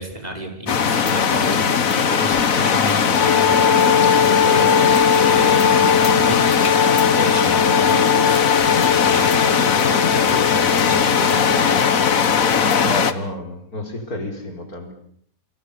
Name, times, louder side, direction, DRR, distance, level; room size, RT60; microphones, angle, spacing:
voice 1, 0.0-8.5 8.8-11.7, equal, 25° right, 3 dB, 6.0 m, -31 dB
sound 1, 0.7-13.1, left 6 dB, 70° left, 1.7 m, -19 dB
Wind instrument woodwind instrument, 3.1-13.1, left 7 dB, 50° left, 1.6 m, -20 dB
voice 2, 12.8-14.9, equal, 85° left, 5 dB, 5.0 m, -30 dB
29.0 x 25.0 x 6.8 m, 0.62 s
omnidirectional pair, 1.5 m